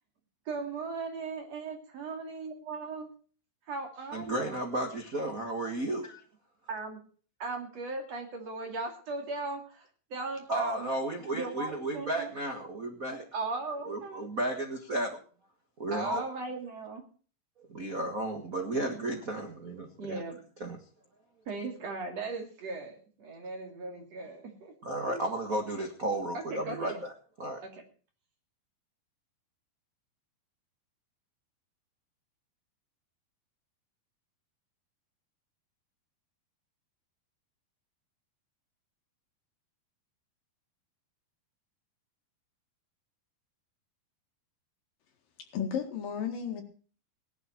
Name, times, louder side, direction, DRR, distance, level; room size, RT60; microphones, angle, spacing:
voice 1, 0.5-3.1 3.7-4.6 6.7-7.0 7.4-10.9 11.3-12.3 13.3-14.3 15.9-17.0 20.0-20.4 21.5-24.7 25.0-25.2 26.5-27.0 27.6-27.8, right 3 dB, 45° right, 3 dB, 3.5 m, -37 dB
voice 2, 4.1-6.2 10.5-13.3 13.9-15.2 15.8-16.2 17.6-20.2 20.6-20.8 24.8-27.1 27.4-27.6, right 1 dB, 80° right, 3 dB, 0.7 m, -33 dB
voice 3, 45.5-46.6, left 8 dB, 65° left, 4 dB, 3.5 m, -33 dB
17.5 x 11.5 x 4.5 m, 0.41 s
omnidirectional pair, 4.4 m